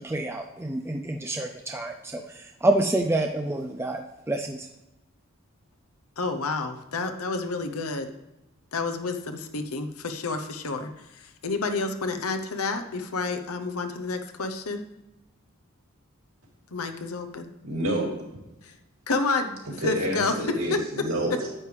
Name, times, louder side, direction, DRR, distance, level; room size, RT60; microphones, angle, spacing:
voice 1, 0.0-4.7, right 1 dB, 10° right, 4 dB, 0.3 m, -28 dB
voice 2, 6.2-8.1 8.7-14.8 16.7-17.5 18.6-18.7 19.1-19.6 19.8-20.3 20.7-20.8, left 3 dB, 80° left, 7 dB, 0.8 m, -29 dB
voice 3, 17.6-18.2 19.8-21.5, right 1 dB, 70° right, -2 dB, 2.8 m, -28 dB
9.8 x 8.4 x 3.3 m, 0.96 s
head